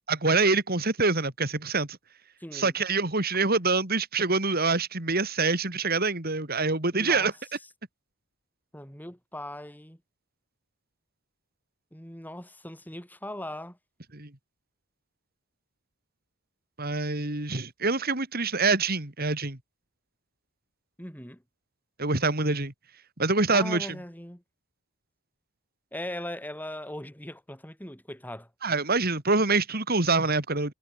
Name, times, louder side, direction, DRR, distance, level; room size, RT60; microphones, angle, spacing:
voice 1, 0.1-2.0 2.5-7.3 14.1-14.3 16.8-19.6 22.0-22.7 23.2-23.9 28.6-30.7, right 3 dB, 45° right, 3.2 m, -25 dB
voice 2, 2.4-2.8 6.9-7.3 8.7-10.0 11.9-13.8 21.0-21.4 23.5-24.4 25.9-28.5, left 1 dB, 10° left, 5.4 m, -39 dB
head